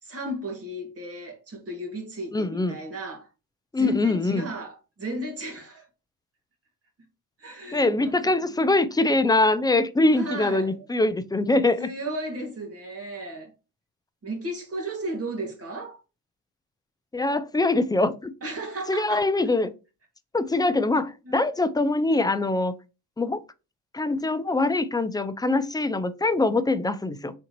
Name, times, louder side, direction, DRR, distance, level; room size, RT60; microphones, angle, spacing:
voice 1, 0.0-3.3 3.8-5.9 7.4-8.2 9.0-9.2 10.1-10.8 11.8-13.5 14.2-16.0 18.4-19.3 21.3-21.4, right 1 dB, 45° right, 2.0 m, -34 dB
voice 2, 2.3-2.8 3.7-4.5 7.7-11.9 17.1-18.3 18.9-19.7 20.3-22.7 23.2-23.4 23.9-27.3, left 2 dB, 10° left, 0.4 m, -23 dB
4.5 x 3.7 x 2.9 m
cardioid pair, 80°, 34 cm